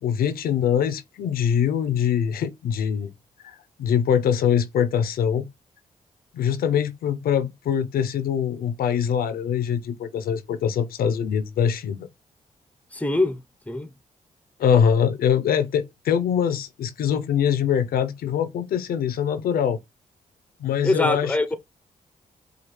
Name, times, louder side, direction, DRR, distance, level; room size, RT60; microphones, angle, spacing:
voice 1, 0.0-3.1 3.4-5.5 6.3-12.1 14.6-19.8 20.6-21.5, left 8 dB, 85° left, 0.6 m, -23 dB
voice 2, 12.9-13.9 20.8-21.5, left 2 dB, 10° left, 0.8 m, -24 dB
4.9 x 2.4 x 3.2 m
supercardioid pair, 55°, 15 cm